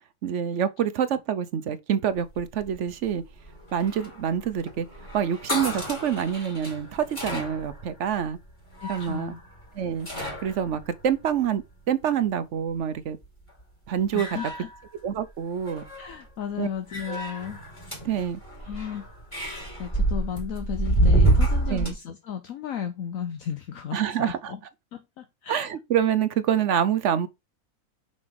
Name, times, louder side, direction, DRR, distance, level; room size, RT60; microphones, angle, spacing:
voice 1, 0.2-3.2 3.7-4.9 5.1-8.4 8.9-9.3 9.7-10.1 10.4-13.2 13.9-14.4 15.0-15.8 16.6-16.7 17.1-17.2 18.0-18.4 21.7-22.0 23.9-24.6 25.5-27.3, right 8 dB, 60° right, 0.9 m, -26 dB
sound 1, 2.2-11.9 13.2-13.6 14.0-15.3 15.5-16.2 16.9-21.9, right 1 dB, 20° left, 3.2 m, -29 dB
voice 2, 8.8-9.4 14.1-14.7 16.0-17.6 18.7-19.1 19.8-24.6 24.9-25.7, left 8 dB, 65° left, 1.1 m, -34 dB
5.7 x 5.2 x 4.7 m
omnidirectional pair, 1.6 m